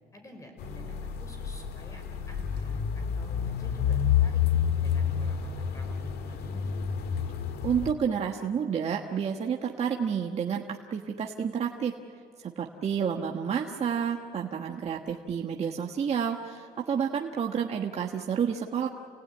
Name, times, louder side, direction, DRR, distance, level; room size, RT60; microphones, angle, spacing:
voice 1, 0.1-6.8, equal, 20° left, 4 dB, 5.5 m, -50 dB
sound 1, 0.6-7.9, left 8 dB, 70° left, 1.8 m, -29 dB
voice 2, 7.6-10.6 10.9-11.9 12.4-18.9, right 7 dB, 40° right, 0 dB, 1.4 m, -30 dB
29.5 x 18.0 x 9.7 m, 2.3 s
cardioid pair, 110°, 17 cm